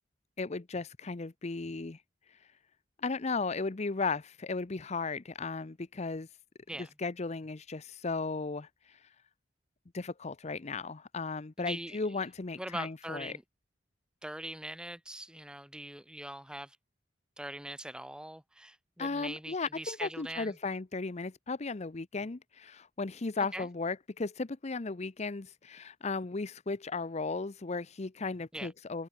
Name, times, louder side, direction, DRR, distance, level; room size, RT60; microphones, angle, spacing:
voice 1, 0.4-2.0 2.3-2.5 3.0-6.3 6.8-9.1 9.9-13.4 19.0-29.1, left 3 dB, 40° left, 0.7 m, -36 dB
voice 2, 11.6-12.2 12.6-13.4 14.2-16.8 17.4-20.6 23.5-23.7 28.5-28.7, right 1 dB, 5° right, 3.8 m, -42 dB
head